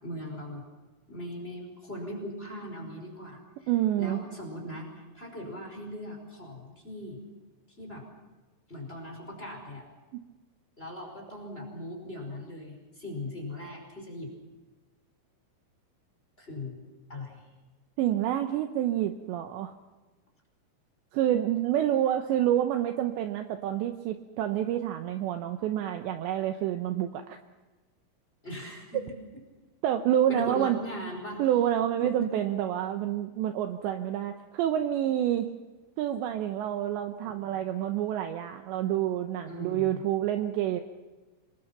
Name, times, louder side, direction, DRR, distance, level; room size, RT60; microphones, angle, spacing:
voice 1, 0.0-0.6 1.1-3.7 4.0-7.2 7.8-8.0 8.7-9.9 10.8-14.3 16.4-16.8 17.1-17.5 28.4-29.1 30.3-31.4 32.0-32.3 37.2-37.6 39.5-40.0, left 1 dB, 10° left, 1 dB, 4.9 m, -39 dB
voice 2, 3.7-4.2 18.0-19.7 21.1-27.4 29.8-30.8 31.4-35.5 36.0-40.8, right 11 dB, 75° right, 7 dB, 2.8 m, -28 dB
26.5 x 22.5 x 5.9 m, 1.2 s
omnidirectional pair, 5.8 m